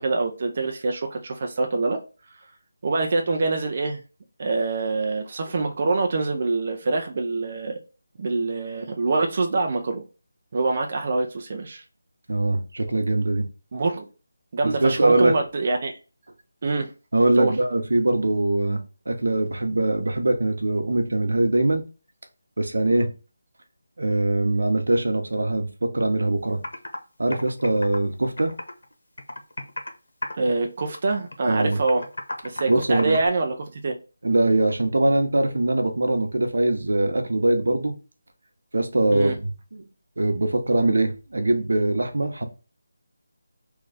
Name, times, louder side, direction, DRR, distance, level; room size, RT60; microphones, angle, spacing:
voice 1, 0.0-2.0 2.8-4.0 4.4-7.8 8.2-10.0 10.5-11.8 13.7-14.1 14.5-15.9 16.6-16.9 17.3-17.5 30.4-32.0 32.4-34.0 39.1-39.3, right 3 dB, 35° right, 0.5 m, -25 dB
voice 2, 12.3-13.5 14.6-15.4 17.1-21.8 22.6-23.1 24.0-26.6 27.2-28.5 31.5-31.8 32.7-33.2 34.2-37.9 38.7-39.8 40.2-42.4, right 2 dB, 80° right, 0.8 m, -22 dB
Computer keyboard, 26.2-26.3 26.6-27.0 27.3-28.9 29.2-30.0 30.2-30.6 30.9-33.3, left 2 dB, 80° left, 0.9 m, -34 dB
3.2 x 2.3 x 3.8 m
figure-of-eight pair, 175°, 0 cm